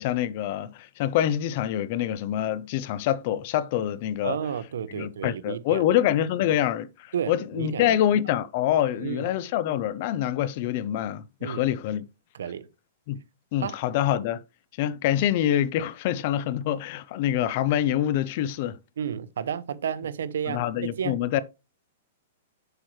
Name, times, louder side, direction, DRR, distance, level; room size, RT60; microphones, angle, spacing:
voice 1, 0.0-4.4 4.9-12.0 13.1-13.2 13.5-14.4 14.8-18.8 20.5-21.4, left 11 dB, 35° left, 0.6 m, -26 dB
voice 2, 4.2-5.9 7.1-8.0 8.9-9.3 11.4-11.7 12.3-12.7 13.6-13.8 19.0-21.2, right 8 dB, 90° right, 0.8 m, -32 dB
7.9 x 6.1 x 3.2 m
hypercardioid pair, 170°, 0 cm